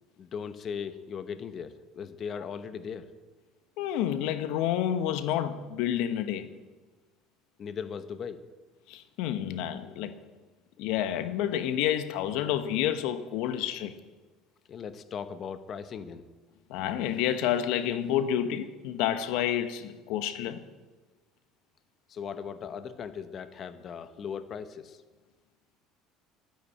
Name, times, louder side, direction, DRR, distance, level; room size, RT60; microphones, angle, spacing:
voice 1, 0.2-3.1 7.6-8.4 14.7-16.3 22.1-25.0, left 7 dB, 40° left, 0.9 m, -38 dB
voice 2, 3.8-6.5 8.9-10.2 10.8-14.0 16.7-20.6, left 10 dB, 75° left, 0.9 m, -29 dB
13.0 x 10.0 x 8.5 m
cardioid pair, 130°, 0 cm